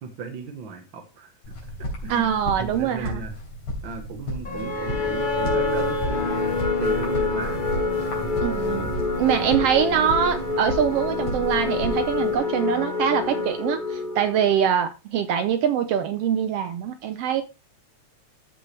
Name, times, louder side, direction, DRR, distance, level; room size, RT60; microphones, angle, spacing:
voice 1, 0.0-1.5 2.0-2.3 2.6-3.3 3.8-6.3 6.8-7.6, right 5 dB, 50° right, 1.5 m, -36 dB
sound 1, 1.4-12.4, equal, 80° left, 4.4 m, -33 dB
voice 2, 2.1-3.2 8.4-8.9 9.2-17.4, right 8 dB, 75° right, 1.4 m, -23 dB
sound 2, 4.4-14.6, left 3 dB, 40° left, 0.6 m, -27 dB
13.0 x 5.4 x 3.3 m
omnidirectional pair, 3.4 m